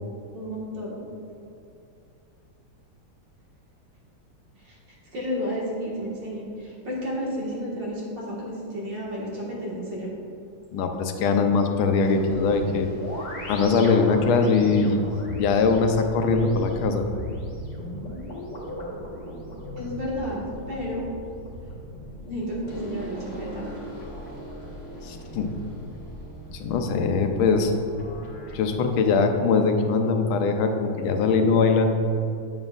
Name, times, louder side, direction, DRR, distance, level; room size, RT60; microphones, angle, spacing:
voice 1, 0.3-1.0 4.6-10.1 19.8-20.4 20.7-21.1 22.2-23.7, equal, 60° right, -6 dB, 2.3 m, -32 dB
voice 2, 10.7-12.9 13.5-17.1 25.0-25.5 26.5-27.7 28.5-31.9, left 4 dB, 80° left, 5 dB, 1.5 m, -22 dB
sound 1, 12.0-28.6, equal, 30° left, 0.9 m, -38 dB
8.6 x 7.3 x 2.4 m, 2.6 s
omnidirectional pair, 2.3 m